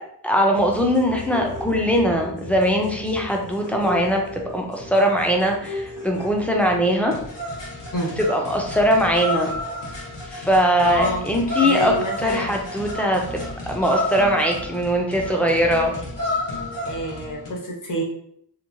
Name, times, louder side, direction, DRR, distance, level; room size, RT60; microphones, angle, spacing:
voice 1, 0.2-7.1 8.3-9.5 10.3-11.9 12.2-13.4 13.7-16.0, equal, 5° left, 1 dB, 0.3 m, -21 dB
sound 1, 0.5-17.5, left 1 dB, 90° left, 1.0 m, -32 dB
voice 2, 10.8-11.2 11.6-12.5 16.9-18.0, equal, 50° left, -1 dB, 0.8 m, -27 dB
2.9 x 2.1 x 2.5 m, 0.69 s
wide cardioid pair, 120°, 42 cm